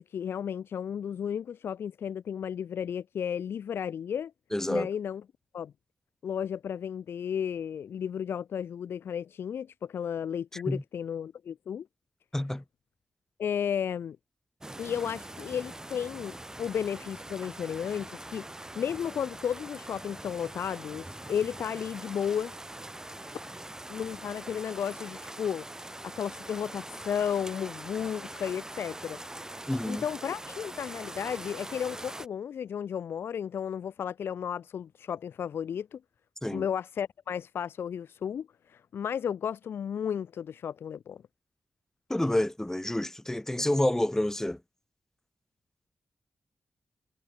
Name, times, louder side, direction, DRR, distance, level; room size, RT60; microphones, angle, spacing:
voice 1, 0.0-4.3 4.7-5.2 5.5-5.7 6.2-11.9 13.4-14.2 14.8-18.4 18.8-22.5 23.9-25.6 26.0-29.2 29.8-36.0 36.5-41.2, left 8 dB, 85° left, 0.4 m, -33 dB
voice 2, 4.5-4.9 10.5-10.8 12.3-12.6 29.7-30.0 36.4-36.6 42.1-44.6, left 1 dB, 10° left, 1.2 m, -28 dB
sound 1, 14.6-32.3, right 1 dB, 15° right, 0.8 m, -43 dB
cardioid pair, 60°, 4 cm